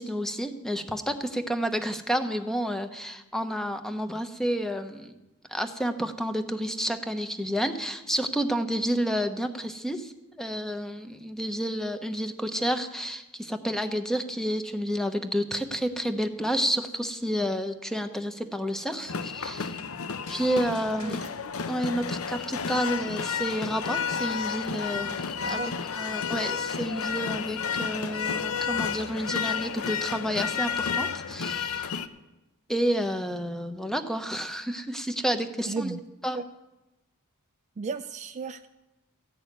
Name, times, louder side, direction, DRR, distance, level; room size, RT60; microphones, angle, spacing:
voice 1, 0.0-5.1 5.5-10.1 10.4-19.8 20.3-21.2 21.7-25.6 25.9-31.9 32.7-36.0 36.2-36.4, equal, ahead, 8 dB, 0.8 m, -30 dB
sound 1, 19.1-32.1, left 6 dB, 70° left, 0.6 m, -31 dB
voice 2, 21.0-21.3 25.4-25.7 35.7-36.0 36.3-36.4 37.8-38.7, right 4 dB, 35° right, 10 dB, 0.3 m, -34 dB
14.5 x 6.3 x 9.1 m, 1.0 s
head